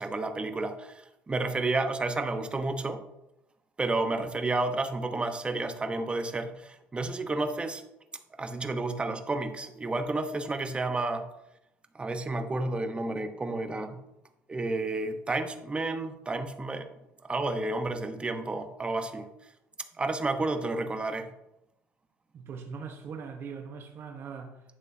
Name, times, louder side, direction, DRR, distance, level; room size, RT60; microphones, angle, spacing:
voice 1, 0.0-3.0 3.8-7.8 8.4-11.3 11.9-14.0 14.5-16.9 17.2-19.3 20.0-21.3, right 2 dB, 20° right, 1.1 m, -31 dB
voice 2, 22.3-24.6, right 5 dB, 50° right, 1.1 m, -41 dB
11.0 x 7.9 x 2.8 m
supercardioid pair, 90°, 5 cm